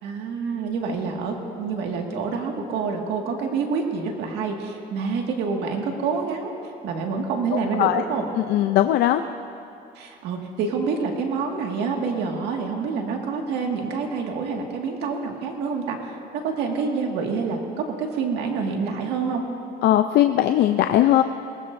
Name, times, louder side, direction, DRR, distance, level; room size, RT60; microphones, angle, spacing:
voice 1, 0.0-6.5 6.8-8.3 10.0-19.4, right 5 dB, 85° right, 1 dB, 1.9 m, -27 dB
voice 2, 7.7-8.0 8.4-9.2 19.8-21.2, left 13 dB, 75° left, 8 dB, 0.5 m, -19 dB
21.5 x 18.5 x 2.6 m, 2.7 s
cardioid pair, 110°, 17 cm